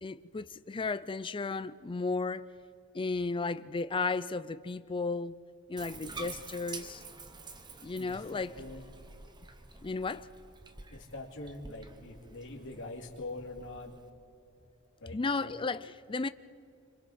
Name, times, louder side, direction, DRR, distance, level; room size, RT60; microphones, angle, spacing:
voice 1, 0.0-2.5 2.9-5.4 5.7-7.0 7.8-8.6 9.8-10.3 15.1-16.3, left 3 dB, 25° left, 0.4 m, -34 dB
Bathtub (filling or washing), 5.8-14.1, right 3 dB, 20° right, 1.1 m, -48 dB
voice 2, 7.9-8.8 10.9-14.0 15.0-15.5, left 2 dB, 60° left, 2.6 m, -44 dB
27.5 x 26.0 x 4.3 m
head